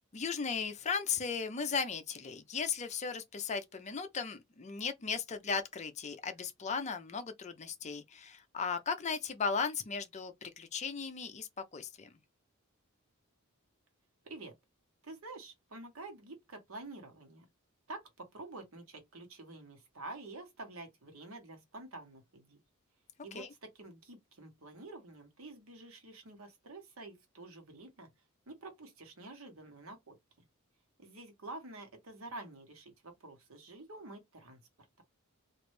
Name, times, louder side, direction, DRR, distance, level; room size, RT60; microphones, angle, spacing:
voice 1, 0.1-12.2 23.3-23.5, left 5 dB, 30° left, 0.5 m, -36 dB
voice 2, 14.2-14.5 15.0-17.5 17.9-22.6 23.2-28.1 28.5-30.2 31.0-34.6, right 2 dB, 70° right, 1.1 m, -48 dB
3.1 x 2.5 x 3.2 m
head